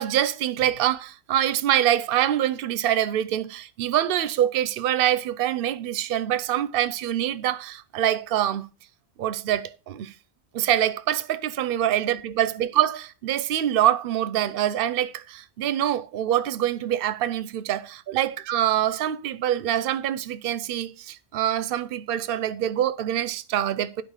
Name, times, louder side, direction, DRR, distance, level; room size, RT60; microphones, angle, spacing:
voice 1, 0.0-8.7 9.2-10.1 10.5-24.0, right 11 dB, 65° right, 0.8 m, -25 dB
9.7 x 4.3 x 6.4 m
omnidirectional pair, 1.1 m